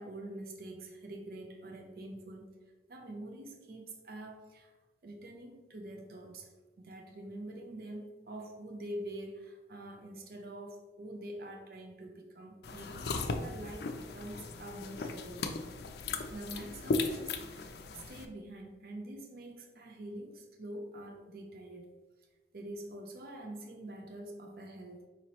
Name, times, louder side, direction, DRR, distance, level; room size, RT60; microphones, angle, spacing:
voice 1, 0.0-2.6 2.9-4.8 5.0-15.5 16.3-21.9 22.5-25.0, right 1 dB, 55° right, 3 dB, 0.5 m, -45 dB
sound 1, 12.6-18.3, left 3 dB, 65° left, 0.4 m, -37 dB
5.0 x 2.9 x 2.9 m, 1.3 s
head